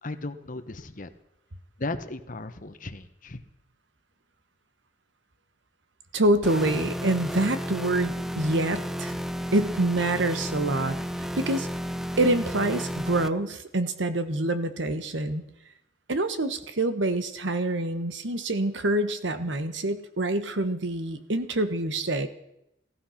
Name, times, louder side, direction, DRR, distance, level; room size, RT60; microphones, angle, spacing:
voice 1, 0.0-1.1 1.8-3.4, left 2 dB, 45° left, 9 dB, 1.1 m, -36 dB
voice 2, 6.1-9.2 9.5-11.0 11.4-11.7 12.2-15.4 16.1-22.3, right 1 dB, 80° right, 10 dB, 1.2 m, -26 dB
sound 1, 6.4-13.3, equal, ahead, 0.5 m, -32 dB
15.5 x 14.0 x 5.8 m, 0.84 s
head